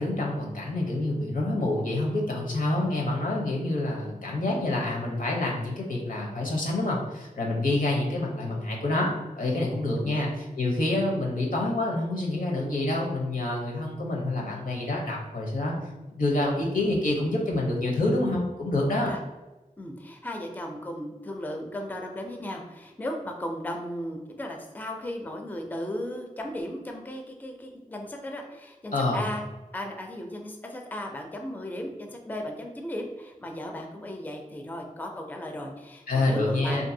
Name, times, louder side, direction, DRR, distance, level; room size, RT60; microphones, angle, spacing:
voice 1, 0.0-9.1 9.4-15.7 16.1-19.1 28.9-29.2 36.1-36.9, left 2 dB, 75° left, -2 dB, 0.7 m, -27 dB
voice 2, 19.8-29.4 29.7-36.9, left 1 dB, 10° left, 2 dB, 0.3 m, -36 dB
2.6 x 2.6 x 2.6 m, 1.1 s
wide cardioid pair, 65°, 14 cm